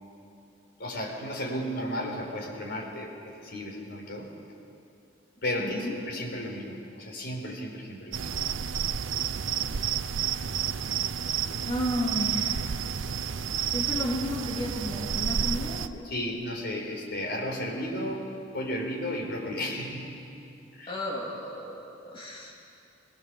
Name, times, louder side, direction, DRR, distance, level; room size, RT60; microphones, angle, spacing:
voice 1, 0.8-4.3 5.4-8.3 16.0-18.2 18.5-20.2 20.7-21.0, left 1 dB, 60° left, -1 dB, 4.6 m, -34 dB
voice 2, 5.6-5.9 11.6-12.7 13.7-16.1 20.9-22.5, left 1 dB, 30° left, -3 dB, 3.1 m, -33 dB
sound 1, 8.1-15.9, right 8 dB, 80° right, 0.6 m, -30 dB
22.0 x 20.0 x 7.2 m, 2.6 s
head